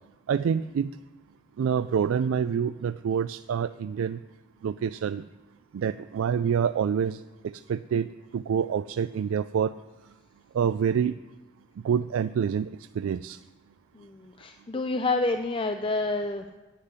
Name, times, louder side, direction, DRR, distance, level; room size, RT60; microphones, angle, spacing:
voice 1, 0.3-0.9 1.6-4.2 4.6-5.2 5.7-9.8 10.5-11.1 11.8-13.4, right 7 dB, 90° right, 13 dB, 0.3 m, -27 dB
voice 2, 13.9-16.6, left 2 dB, 25° left, 7 dB, 0.4 m, -29 dB
10.5 x 7.4 x 9.6 m, 1.2 s
head